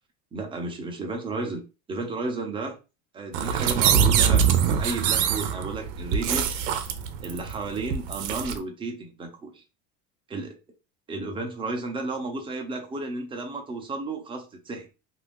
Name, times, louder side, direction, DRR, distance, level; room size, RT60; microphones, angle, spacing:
voice 1, 0.3-2.8 3.1-6.6 7.2-9.6 10.3-10.6 11.1-14.9, right 3 dB, 15° right, 0.6 m, -33 dB
sound 1, 3.3-8.6, right 8 dB, 85° right, 0.6 m, -24 dB
2.6 x 2.4 x 3.4 m
cardioid pair, 150°, 36 cm